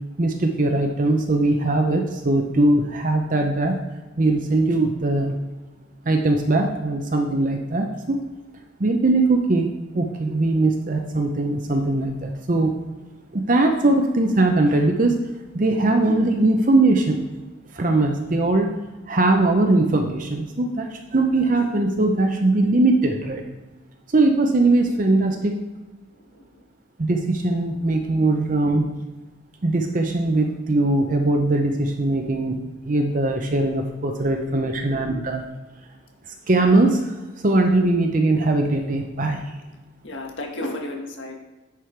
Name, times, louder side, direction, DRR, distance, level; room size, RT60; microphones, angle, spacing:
voice 1, 0.2-3.7 4.2-5.4 6.1-8.2 8.8-12.7 13.3-15.2 15.5-17.3 17.7-18.7 19.1-23.4 24.1-25.5 27.0-28.9 29.6-35.4 36.5-37.1 37.4-39.4, right 2 dB, 40° right, 3 dB, 0.6 m, -20 dB
voice 2, 26.1-26.6 34.4-34.7 40.0-41.3, left 1 dB, 70° left, 1 dB, 1.5 m, -34 dB
10.0 x 5.0 x 4.5 m, 1.2 s
head